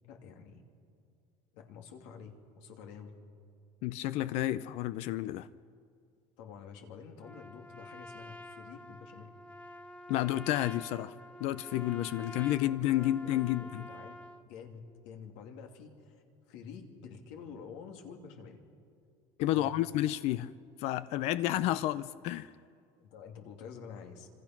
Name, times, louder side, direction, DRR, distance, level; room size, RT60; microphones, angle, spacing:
voice 1, 0.0-0.6 1.5-3.1 6.4-9.3 12.6-14.1 14.4-18.6 19.5-19.9 21.5-21.6 23.0-24.3, left 6 dB, 80° left, 2.8 m, -49 dB
voice 2, 3.8-5.5 10.1-11.1 11.4-13.9 19.4-20.5 20.8-22.5, left 14 dB, 65° left, 0.6 m, -31 dB
Trumpet, 7.2-14.5, left 1 dB, 10° left, 0.7 m, -48 dB
28.0 x 26.0 x 6.1 m
cardioid pair, 145°, 12 cm